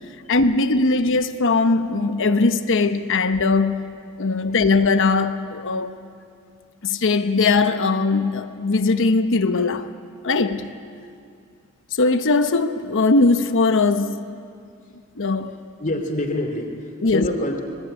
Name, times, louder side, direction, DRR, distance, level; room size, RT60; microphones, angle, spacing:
voice 1, 0.3-3.9 4.2-5.9 6.8-9.9 10.2-10.7 12.0-14.2 15.2-15.5 17.0-17.3, left 3 dB, 60° left, 1.0 m, -20 dB
voice 2, 15.8-17.6, left 1 dB, 35° left, 2.9 m, -26 dB
26.0 x 21.0 x 9.1 m
head